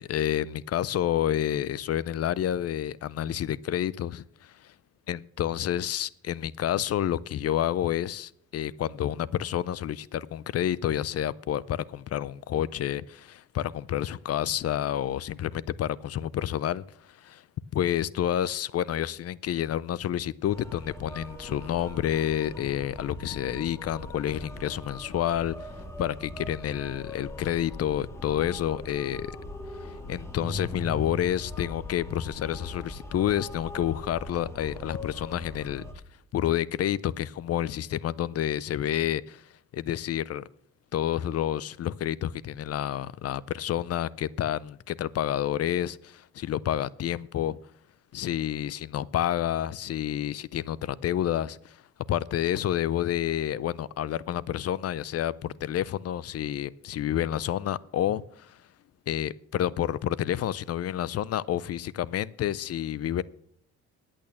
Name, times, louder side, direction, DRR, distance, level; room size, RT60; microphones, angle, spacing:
voice 1, 0.0-4.7 5.1-17.4 17.7-25.7 26.0-29.3 29.7-35.8 36.3-40.4 40.9-47.6 48.1-51.8 52.1-58.6 59.1-63.2, left 11 dB, 55° left, 0.5 m, -29 dB
sound 1, 20.5-35.9, left 1 dB, 10° left, 2.3 m, -40 dB
10.5 x 8.9 x 7.0 m
cardioid pair, 90°, 30 cm